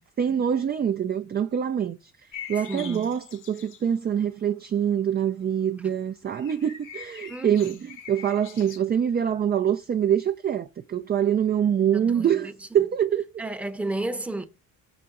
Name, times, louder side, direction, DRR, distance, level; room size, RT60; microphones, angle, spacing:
voice 1, 0.2-2.1 2.5-7.8 8.1-12.5 12.7-13.2, right 9 dB, 30° right, 0.4 m, -25 dB
sound 1, 2.3-3.9 6.3-8.8, left 8 dB, 60° left, 1.2 m, -43 dB
voice 2, 2.6-3.1 5.8-5.9 7.3-7.8 11.9-12.5 13.4-14.5, right 2 dB, 5° right, 0.7 m, -32 dB
6.1 x 5.8 x 3.7 m
cardioid pair, 105°, 35 cm